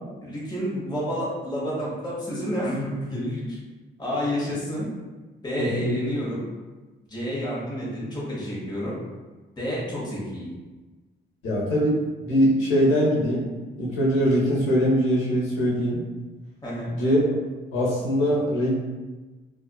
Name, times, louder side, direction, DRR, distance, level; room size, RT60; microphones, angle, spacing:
voice 1, 0.2-3.6 4.0-4.9 5.4-6.5 7.1-8.9 9.6-10.5 16.6-16.9, equal, 20° left, -7 dB, 1.0 m, -29 dB
voice 2, 5.6-5.9 11.4-12.0 12.2-13.4 13.8-16.0 17.0-17.2 17.7-18.7, equal, 90° left, -5 dB, 0.7 m, -22 dB
2.4 x 2.3 x 2.2 m, 1.2 s
cardioid pair, 90°, 20 cm